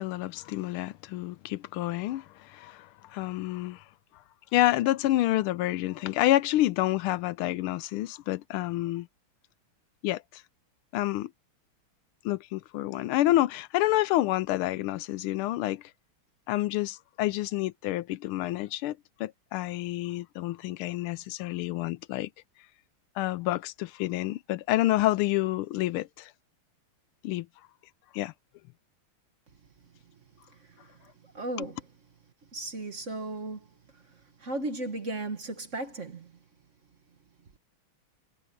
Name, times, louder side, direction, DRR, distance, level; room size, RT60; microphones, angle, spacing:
voice 1, 0.0-3.8 4.5-9.1 10.0-10.4 10.9-11.3 12.2-15.9 16.5-22.3 23.2-26.3 27.2-27.5 28.1-28.3, left 15 dB, 80° left, 1.4 m, -28 dB
voice 2, 30.5-31.9 32.5-36.4, right 2 dB, 40° right, 1.6 m, -37 dB
omnidirectional pair, 2.4 m